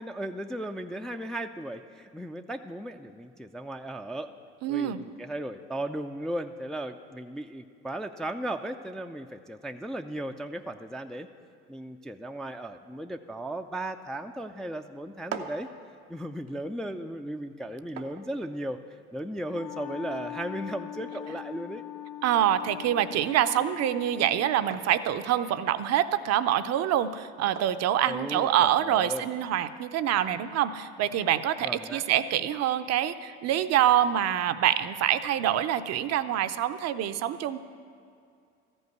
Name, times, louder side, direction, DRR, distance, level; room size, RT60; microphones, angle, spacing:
voice 1, 0.0-4.3 4.7-11.3 11.7-15.7 16.1-18.8 19.1-21.8 28.1-29.2 31.6-32.0, right 1 dB, ahead, 5 dB, 0.4 m, -36 dB
voice 2, 4.6-5.0 22.2-37.6, right 11 dB, 45° right, 12 dB, 0.6 m, -26 dB
sound 1, 15.0-28.9, right 6 dB, 90° right, 0.8 m, -48 dB
Wind instrument woodwind instrument, 19.5-24.9, left 11 dB, 70° left, 0.7 m, -41 dB
14.0 x 5.4 x 9.2 m, 2.4 s
hypercardioid pair, 65°, 35 cm